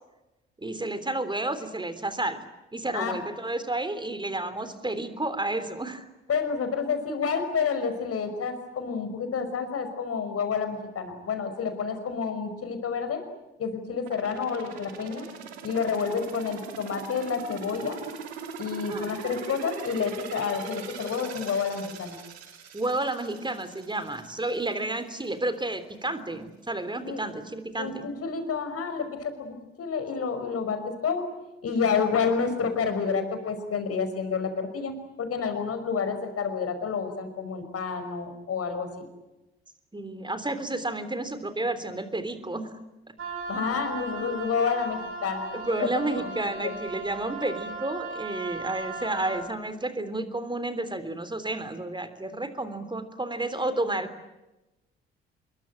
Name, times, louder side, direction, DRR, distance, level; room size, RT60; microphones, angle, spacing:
voice 1, 0.6-2.4 2.7-6.1 18.9-19.0 22.7-28.0 39.9-42.7 45.5-54.3, right 2 dB, 15° right, 11 dB, 3.5 m, -31 dB
voice 2, 6.3-13.2 13.6-15.2 15.6-18.0 18.6-22.2 27.0-27.2 27.8-31.3 31.6-34.9 35.2-39.0 43.5-45.5 45.8-45.9 46.2-46.3 46.6-46.7, left 5 dB, 45° left, 8 dB, 5.5 m, -29 dB
sound 1, 14.0-24.8 25.2-25.3, right 5 dB, 80° right, 2.8 m, -41 dB
Wind instrument woodwind instrument, 43.2-49.5, right 3 dB, 40° right, 7.6 m, -37 dB
26.0 x 22.5 x 9.0 m, 1.0 s
figure-of-eight pair, 45°, 32 cm